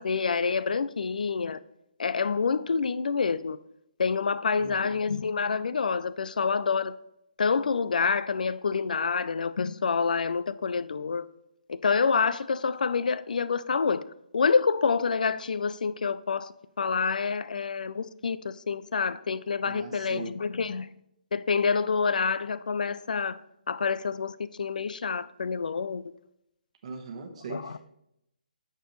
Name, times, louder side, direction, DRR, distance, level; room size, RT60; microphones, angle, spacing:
voice 1, 0.0-1.6 2.0-3.6 4.0-6.9 7.4-11.3 11.7-14.0 14.3-20.9 21.3-23.4 23.7-26.0 27.5-27.8, left 5 dB, 60° left, 0.4 m, -27 dB
voice 2, 4.6-5.0 19.7-20.3 26.8-27.8, right 3 dB, 45° right, 1.1 m, -39 dB
8.7 x 6.8 x 3.1 m
figure-of-eight pair, 140°, 5 cm